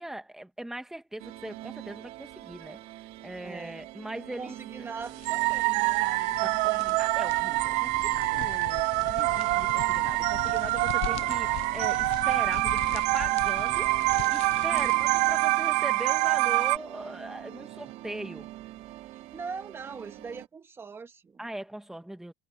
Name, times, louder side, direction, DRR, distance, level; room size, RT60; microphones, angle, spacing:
voice 1, 0.0-2.8 3.2-5.0 5.4-5.5 6.4-6.5 6.8-13.9 14.3-18.5 21.4-22.3, right 1 dB, 5° right, 1.8 m, -40 dB
sound 1, 1.2-20.5, right 16 dB, 60° right, 3.7 m, -44 dB
voice 2, 3.4-3.9 4.4-7.0 14.7-15.1 19.1-21.4, right 5 dB, 20° right, 2.3 m, -42 dB
sound 2, 4.8-15.4, left 18 dB, 55° left, 0.6 m, -42 dB
sound 3, 5.2-16.8, right 24 dB, 80° right, 0.6 m, -26 dB
cardioid pair, 170°, 13 cm